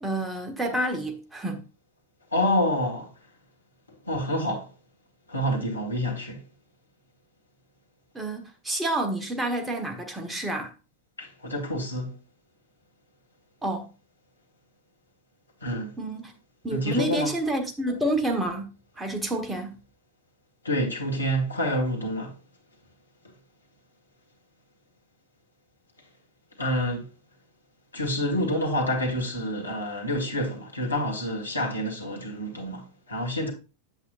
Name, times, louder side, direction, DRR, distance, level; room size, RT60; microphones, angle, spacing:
voice 1, 0.0-1.6 8.1-10.7 13.6-13.9 16.0-16.3 16.6-19.8, right 1 dB, 10° right, 1.4 m, -29 dB
voice 2, 2.3-3.3 3.9-4.7 5.3-6.4 11.2-12.2 15.6-16.0 16.7-17.3 20.6-22.4 23.2-23.3 26.6-27.1 27.9-33.5, equal, 80° left, 1.8 m, -28 dB
8.2 x 8.1 x 2.6 m
figure-of-eight pair, 90°, 0 cm